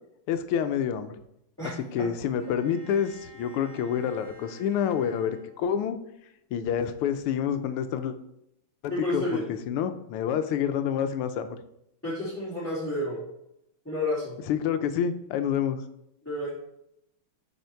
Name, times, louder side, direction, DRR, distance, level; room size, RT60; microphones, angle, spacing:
voice 1, 0.3-1.1 1.9-6.0 6.5-8.2 8.8-11.6 14.5-15.8, left 8 dB, 85° left, 10 dB, 1.6 m, -28 dB
voice 2, 1.6-2.1 8.9-9.5 12.0-13.2 13.8-14.3 16.2-16.6, left 1 dB, 5° left, -12 dB, 2.9 m, -30 dB
Bowed string instrument, 2.4-6.0, right 1 dB, 30° right, 2.3 m, -53 dB
8.2 x 4.4 x 4.5 m, 0.80 s
omnidirectional pair, 2.4 m